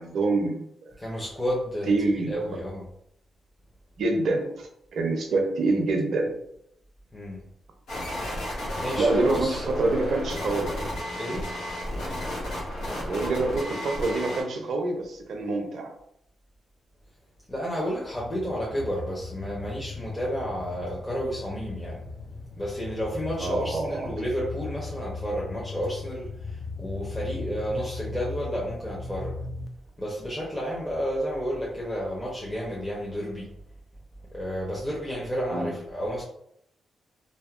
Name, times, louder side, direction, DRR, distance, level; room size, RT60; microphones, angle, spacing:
voice 1, 0.0-0.9 1.9-2.3 4.0-6.3 9.0-9.5 9.8-10.8 13.1-15.9 23.4-24.1 35.5-35.7, right 2 dB, 70° right, 3 dB, 0.5 m, -26 dB
voice 2, 1.0-1.9 2.3-2.9 7.1-7.4 8.4-10.3 11.1-11.5 17.5-22.3 22.6-29.4 30.0-33.5 34.3-36.2, equal, 15° left, -6 dB, 0.8 m, -31 dB
sound 1, 7.9-14.4, left 1 dB, 80° left, 0.9 m, -33 dB
sound 2, 18.0-29.7, left 4 dB, 55° left, 0.4 m, -38 dB
2.7 x 2.2 x 2.4 m, 0.73 s
supercardioid pair, 55°, 0 cm